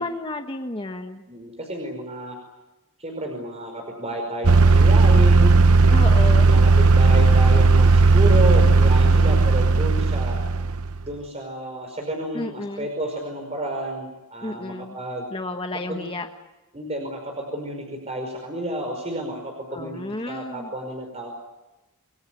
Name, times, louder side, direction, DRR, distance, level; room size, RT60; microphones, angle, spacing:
voice 1, 0.0-1.2 5.9-6.5 12.3-12.9 14.4-15.0 15.3-16.3 19.7-20.7, left 2 dB, 25° left, 4 dB, 1.5 m, -31 dB
voice 2, 1.3-2.4 3.0-5.5 6.3-10.4 11.0-15.3 15.9-16.1 16.7-20.0 20.3-21.3, right 1 dB, 30° right, 2 dB, 5.3 m, -31 dB
sound 1, 4.4-11.0, right 3 dB, 75° right, 0.9 m, -15 dB
28.5 x 21.0 x 9.4 m, 1.1 s
head